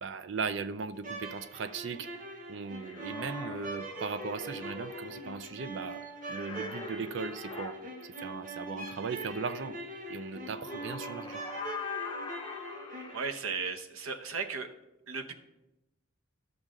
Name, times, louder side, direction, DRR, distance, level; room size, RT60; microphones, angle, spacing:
voice 1, 0.0-2.1 2.5-7.8 8.0-9.8 10.1-11.4, right 5 dB, 60° right, 13 dB, 0.4 m, -38 dB
sound 1, 0.9-13.3, right 2 dB, 40° right, 1.0 m, -42 dB
sound 2, 2.8-5.2 6.2-7.7 10.3-13.2, left 4 dB, 20° left, 0.7 m, -42 dB
voice 2, 13.1-14.7 15.1-15.3, right 5 dB, 85° right, 6 dB, 0.9 m, -35 dB
12.0 x 6.3 x 3.7 m, 0.92 s
head